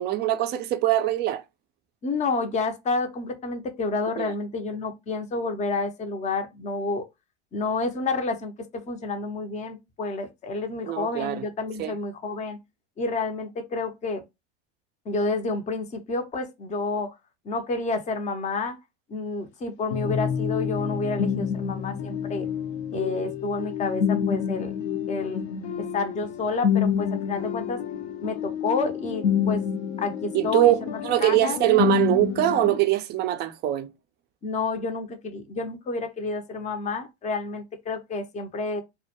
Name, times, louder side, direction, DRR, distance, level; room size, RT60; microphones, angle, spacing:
voice 1, 0.0-1.4 4.2-4.3 10.8-11.4 11.8-11.9 30.3-33.9, right 14 dB, 30° right, 0.4 m, -23 dB
voice 2, 2.0-7.0 7.5-8.5 8.9-12.6 13.0-14.2 15.1-17.1 17.4-18.8 19.1-22.5 22.9-24.7 25.1-25.4 25.8-27.8 28.2-29.6 30.0-31.6 34.4-38.8, left 3 dB, 20° left, 0.5 m, -29 dB
sound 1, 19.9-32.8, left 8 dB, 70° left, 0.6 m, -28 dB
2.1 x 2.1 x 2.8 m
hypercardioid pair, 95°, 34 cm